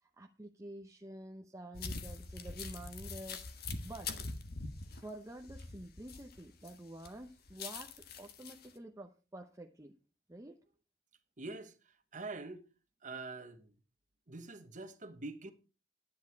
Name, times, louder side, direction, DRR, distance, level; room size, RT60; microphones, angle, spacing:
voice 1, 0.0-3.5 3.8-4.1 5.0-10.0 10.3-10.6, right 1 dB, 15° right, 0.9 m, -49 dB
sound 1, 1.7-6.7 7.0-8.7, left 4 dB, 60° left, 1.4 m, -43 dB
voice 2, 11.4-11.7 12.1-12.6 13.0-13.7 14.3-15.5, right 3 dB, 45° right, 1.4 m, -44 dB
10.5 x 9.8 x 4.7 m
head